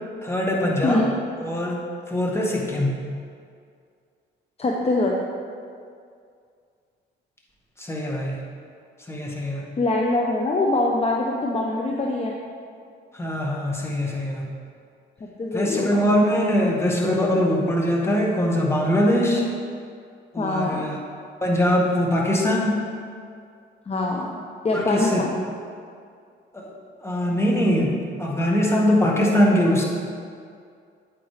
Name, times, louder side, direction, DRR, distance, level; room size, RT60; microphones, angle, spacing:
voice 1, 0.2-1.0 1.4-1.8 2.1-3.0 7.8-8.4 9.1-9.6 13.1-14.4 15.5-19.4 20.3-21.0 21.4-22.9 24.7-25.2 26.5-26.7 27.0-29.8, equal, 15° left, -2 dB, 1.6 m, -22 dB
voice 2, 4.6-5.2 9.8-12.4 15.4-16.0 20.4-20.8 23.9-24.4 24.6-25.3, left 2 dB, 30° left, -1 dB, 0.8 m, -23 dB
8.8 x 8.4 x 3.3 m, 2.3 s
cardioid pair, 90°, 20 cm